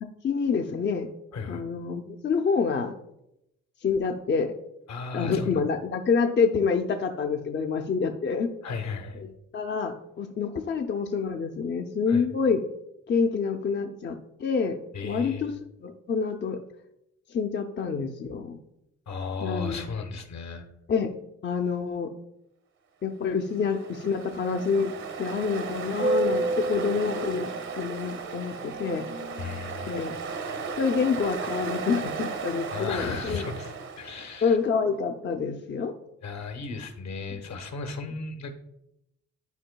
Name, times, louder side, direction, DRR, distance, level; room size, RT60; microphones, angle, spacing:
voice 1, 0.2-1.1 1.5-2.9 3.8-4.5 5.1-8.5 9.2-12.6 13.1-15.5 15.8-16.6 17.3-18.6 19.4-19.9 20.9-21.1 21.4-22.1 23.0-24.9 25.2-27.5 27.8-29.0 29.8-30.1 30.8-33.4 34.4-35.9, left 5 dB, 35° left, 4 dB, 0.5 m, -27 dB
voice 2, 4.9-5.6 8.6-9.2 12.1-12.3 14.9-15.5 19.1-20.7 29.4-30.1 32.7-33.7 34.0-34.6 36.2-38.5, left 4 dB, 65° left, 6 dB, 1.1 m, -35 dB
Ocean, 23.4-34.5, right 3 dB, 65° right, 1.0 m, -33 dB
10.5 x 4.4 x 2.2 m, 0.82 s
cardioid pair, 90°, 30 cm